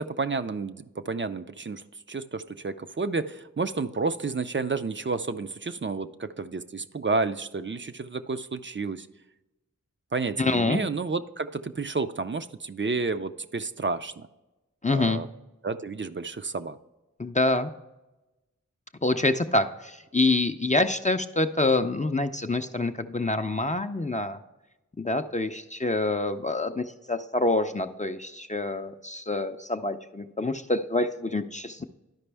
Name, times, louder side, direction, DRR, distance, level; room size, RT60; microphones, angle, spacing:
voice 1, 0.0-9.1 10.1-14.3 14.9-15.3 15.6-16.8, right 4 dB, 40° right, 11 dB, 0.4 m, -31 dB
voice 2, 10.4-10.8 14.8-15.2 17.2-17.7 19.0-24.4 25.0-31.8, left 2 dB, 25° left, 7 dB, 0.4 m, -26 dB
12.0 x 5.2 x 3.3 m, 1.0 s
wide cardioid pair, 45°, 31 cm